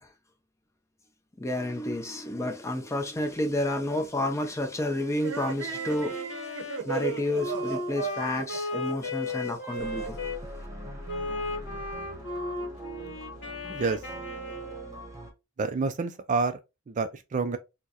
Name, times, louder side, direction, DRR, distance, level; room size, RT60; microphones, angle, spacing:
voice 1, 1.4-10.2, left 1 dB, 15° left, 0.6 m, -30 dB
sound 1, 5.2-9.8, right 5 dB, 90° right, 0.8 m, -36 dB
Wind instrument woodwind instrument, 5.7-10.4 11.1-15.0, left 2 dB, 60° left, 1.2 m, -36 dB
sound 2, 9.8-15.3, right 1 dB, 15° right, 1.1 m, -42 dB
voice 2, 15.6-16.6 16.9-17.6, right 4 dB, 35° right, 0.3 m, -28 dB
4.4 x 2.1 x 2.8 m
head